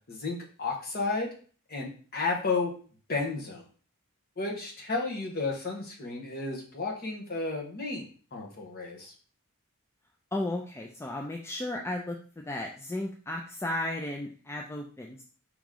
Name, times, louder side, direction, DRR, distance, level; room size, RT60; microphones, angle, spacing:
voice 1, 0.1-1.3 1.7-2.7 3.1-3.6 4.4-9.1, left 3 dB, 45° left, 0 dB, 1.1 m, -32 dB
voice 2, 10.3-15.2, left 1 dB, 10° left, 1 dB, 0.3 m, -34 dB
4.8 x 3.0 x 3.8 m, 0.41 s
head